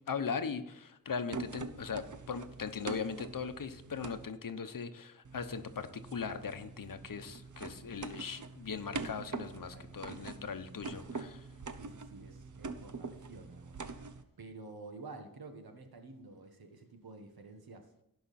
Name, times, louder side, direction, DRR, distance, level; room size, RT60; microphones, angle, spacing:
voice 1, 0.1-11.5, left 6 dB, 65° left, 10 dB, 0.9 m, -39 dB
sound 1, 1.3-4.3 5.2-14.2, right 4 dB, 55° right, 0.9 m, -44 dB
voice 2, 9.4-10.4 11.7-13.7 14.4-17.9, right 3 dB, 85° right, 6 dB, 1.5 m, -51 dB
17.0 x 5.8 x 4.2 m, 0.80 s
wide cardioid pair, 60°, 36 cm